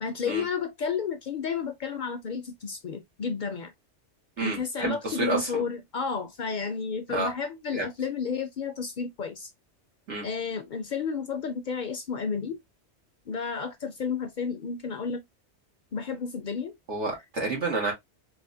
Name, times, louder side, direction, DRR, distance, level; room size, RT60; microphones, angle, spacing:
voice 1, 0.0-3.7 4.4-9.5 10.2-12.6 13.3-15.2 15.9-16.8, left 5 dB, 55° left, 0.5 m, -32 dB
voice 2, 4.4-5.6 7.1-7.3 7.7-7.9 10.1-10.2 16.9-17.9, right 3 dB, 90° right, 2.0 m, -29 dB
4.1 x 2.5 x 2.5 m
omnidirectional pair, 1.2 m